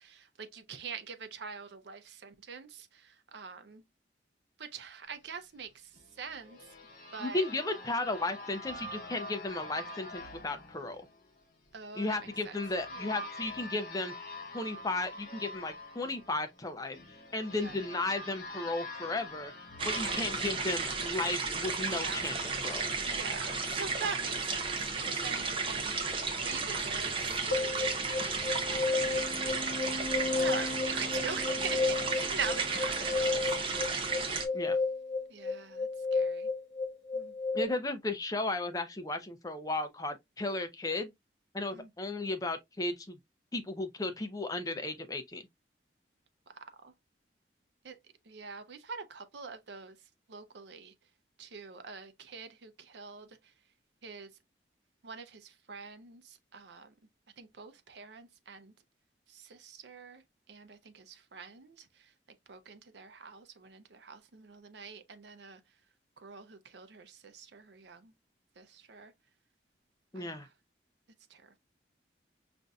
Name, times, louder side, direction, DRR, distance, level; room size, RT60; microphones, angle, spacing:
voice 1, 0.4-2.9 3.3-3.8 4.6-5.7 6.2-6.6 7.1-7.4 11.7-12.2 20.0-20.2 21.7-21.8 22.0-22.2 23.1-24.7 25.0-25.9 26.4-27.2 27.4-27.9 28.7-29.2 30.0-33.6 33.9-34.0 35.3-35.9 36.1-36.5 37.2-37.3 41.7-41.9 47.8-47.9 48.3-49.9 50.3-50.9 51.4-53.3 54.0-54.3 55.0-55.4 55.7-56.2 56.5-56.9 57.4-58.7 59.6-60.2 60.5-61.0 61.3-61.8 62.5-65.6 66.2-68.0 68.6-69.1 70.2-70.3, right 5 dB, 70° right, 0.6 m, -43 dB
sound 1, 5.9-21.6, left 1 dB, 45° left, 1.0 m, -46 dB
voice 2, 7.2-11.1 11.9-14.1 14.5-17.0 17.3-19.5 19.8-22.8 34.5-34.8 37.5-41.1 41.5-43.2 43.5-45.4 70.1-70.5, left 2 dB, 20° left, 0.5 m, -35 dB
sound 2, 19.8-34.4, right 4 dB, 30° right, 0.6 m, -33 dB
sound 3, 27.5-37.6, left 4 dB, 70° left, 0.8 m, -33 dB
5.3 x 2.5 x 2.3 m
head